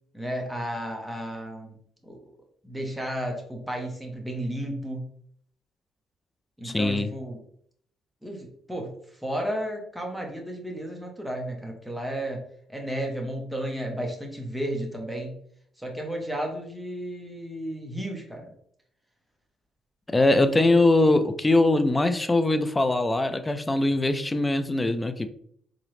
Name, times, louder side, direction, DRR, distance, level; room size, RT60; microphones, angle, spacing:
voice 1, 0.1-1.8 2.0-2.2 2.6-5.1 6.6-7.4 8.2-12.4 12.7-15.4 15.8-18.5, equal, ahead, 0 dB, 0.9 m, -33 dB
voice 2, 6.6-7.1 20.1-25.3, left 2 dB, 15° left, 10 dB, 0.4 m, -22 dB
3.8 x 3.0 x 3.1 m, 0.65 s
cardioid pair, 90°, 0 cm